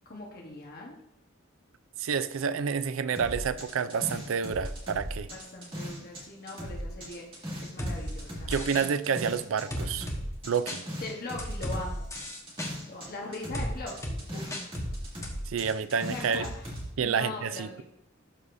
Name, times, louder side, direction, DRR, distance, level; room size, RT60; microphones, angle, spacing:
voice 1, 0.0-1.0 5.3-8.5 11.0-12.1 12.9-14.7 15.6-17.8, left 2 dB, 50° left, 1.2 m, -41 dB
voice 2, 2.0-5.3 8.5-10.1 10.5-10.9 15.5-16.5 17.0-17.8, right 6 dB, 85° right, 0.4 m, -29 dB
sound 1, 3.1-6.2 6.5-13.1 13.3-16.8, equal, 30° right, 2.3 m, -38 dB
sound 2, 7.8-7.9 8.5-8.9 9.7-10.2 10.7-10.8 11.4-11.8 12.1-12.7 13.5-13.7 14.0-14.2 14.5-14.9 15.2-15.3, left 1 dB, 15° left, 1.3 m, -34 dB
12.0 x 4.8 x 2.6 m
head